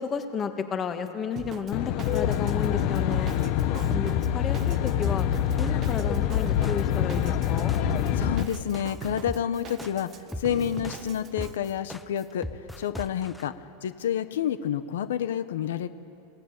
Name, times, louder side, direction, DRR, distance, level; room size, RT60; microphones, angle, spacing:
voice 1, 0.0-3.3 3.9-5.3 5.6-7.7, left 6 dB, 25° left, 7 dB, 1.5 m, -32 dB
Drum kit, 1.4-11.6, right 8 dB, 30° right, 0.8 m, -41 dB
Aircraft, 1.7-8.4, left 10 dB, 50° left, 1.0 m, -25 dB
sound 1, 5.1-13.4, left 1 dB, 5° left, 0.7 m, -38 dB
voice 2, 8.2-10.1 10.4-12.5 12.8-13.5 13.8-15.9, left 9 dB, 90° left, 12 dB, 1.0 m, -29 dB
22.0 x 18.0 x 9.0 m, 2.6 s
supercardioid pair, 145°, 0 cm